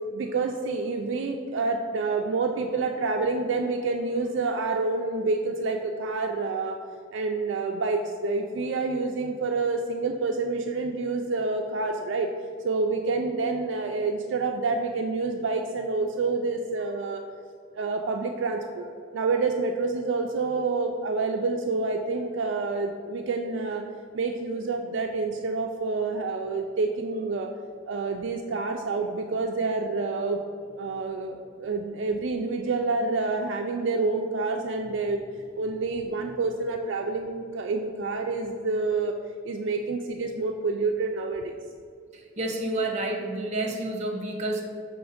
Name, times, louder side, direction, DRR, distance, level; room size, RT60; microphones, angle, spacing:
voice 1, 0.1-6.8 7.1-12.3 12.6-17.2 17.7-18.8 19.1-23.8 24.1-27.5 27.9-30.4 30.7-35.2 35.6-39.1 39.4-41.6, right 3 dB, 65° right, 3 dB, 0.3 m, -28 dB
voice 2, 42.1-44.6, right 2 dB, 35° right, 1 dB, 0.7 m, -29 dB
6.1 x 3.1 x 4.9 m, 2.2 s
head